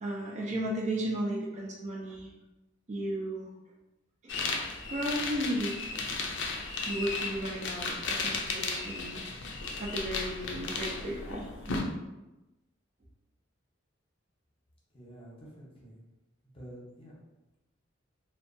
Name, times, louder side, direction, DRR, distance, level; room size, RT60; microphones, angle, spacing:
voice 1, 0.0-2.3 2.9-3.5 4.2-5.8 6.9-9.2 9.8-11.9, right 1 dB, 35° right, -2 dB, 0.4 m, -35 dB
sound 1, 4.3-11.8, left 3 dB, 65° left, 0.4 m, -35 dB
voice 2, 14.9-16.0 16.4-17.2, equal, 30° left, -5 dB, 0.8 m, -49 dB
2.6 x 2.2 x 2.5 m, 1.0 s
head